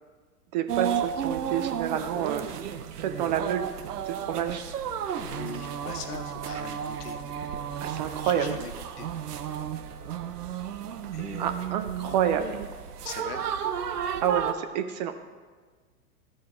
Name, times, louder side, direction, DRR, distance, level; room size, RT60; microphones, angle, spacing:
voice 1, 0.5-2.6 2.9-3.7 4.1-4.6 7.8-8.6 11.4-12.6 14.2-15.1, right 9 dB, 30° right, 8 dB, 0.4 m, -29 dB
sound 1, 0.7-14.5, right 8 dB, 80° right, 0.7 m, -33 dB
voice 2, 5.1-7.2 8.2-9.1 11.1-11.6 12.0-12.2 13.0-13.4, left 6 dB, 80° left, 6 dB, 1.1 m, -41 dB
13.5 x 4.6 x 4.7 m, 1.5 s
hypercardioid pair, 105°, 46 cm